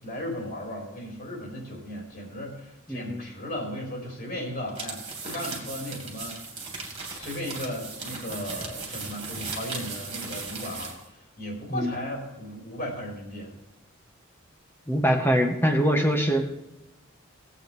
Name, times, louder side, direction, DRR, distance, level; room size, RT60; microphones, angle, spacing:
voice 1, 0.0-13.5, left 1 dB, 45° left, -2 dB, 3.9 m, -36 dB
voice 2, 2.9-3.3 11.7-11.9 14.9-16.4, equal, 10° left, 3 dB, 1.5 m, -23 dB
sound 1, 4.7-11.0, right 3 dB, 25° right, 2.6 m, -37 dB
20.0 x 8.4 x 3.5 m, 0.97 s
head